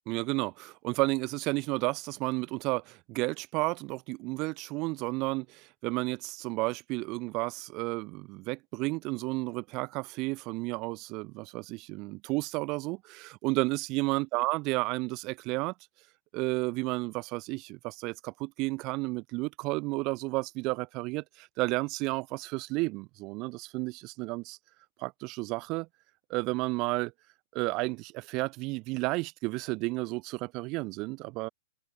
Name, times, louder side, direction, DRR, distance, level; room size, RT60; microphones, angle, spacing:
voice 1, 0.1-15.7 16.3-24.6 25.0-25.9 26.3-27.1 27.5-31.5, right 24 dB, 35° right, 4.0 m, -32 dB
open air
hypercardioid pair, 130°, 0 cm